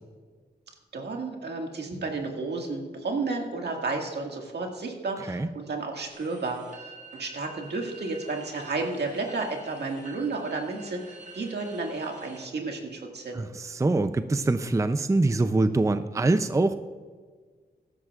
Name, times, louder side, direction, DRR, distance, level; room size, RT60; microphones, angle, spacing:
voice 1, 0.9-13.4, right 3 dB, 75° right, 2 dB, 1.9 m, -32 dB
sound 1, 6.1-12.5, right 3 dB, 45° right, 2.2 m, -48 dB
voice 2, 13.3-16.8, right 2 dB, 15° right, 11 dB, 0.5 m, -24 dB
16.0 x 13.0 x 2.4 m, 1.5 s
cardioid pair, 65°, 18 cm